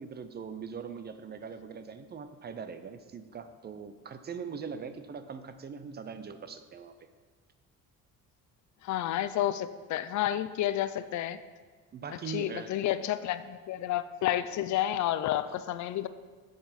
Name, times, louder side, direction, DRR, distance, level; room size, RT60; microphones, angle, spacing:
voice 1, 0.0-6.9 11.9-12.7, right 6 dB, 30° right, 10 dB, 0.5 m, -41 dB
voice 2, 8.8-11.4 12.1-16.1, left 12 dB, 60° left, 13 dB, 0.5 m, -30 dB
7.6 x 6.9 x 5.7 m, 1.5 s
cardioid pair, 140°, 33 cm